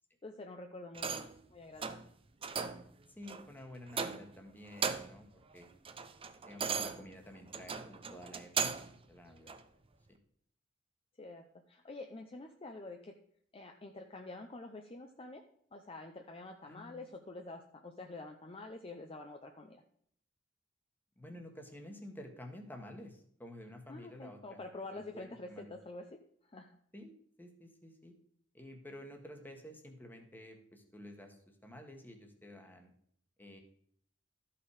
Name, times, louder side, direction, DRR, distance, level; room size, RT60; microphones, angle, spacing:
voice 1, 0.2-2.0 11.2-13.2 13.5-15.4 15.7-19.8 23.9-26.8, left 2 dB, 30° left, 4 dB, 0.7 m, -47 dB
sound 1, 0.9-1.4 1.8-2.1 2.4-2.9 3.3-3.5 3.9-4.4 4.7-5.2 5.6-9.0 9.5-9.6, right 6 dB, 30° right, 0.6 m, -37 dB
voice 2, 3.1-5.7 6.4-9.6 10.1-10.2 16.6-17.0 21.2-24.6 24.9-25.7 26.9-28.1 28.5-32.9 33.4-33.6, left 1 dB, 10° left, 4 dB, 1.5 m, -51 dB
12.5 x 5.8 x 4.8 m, 0.65 s
head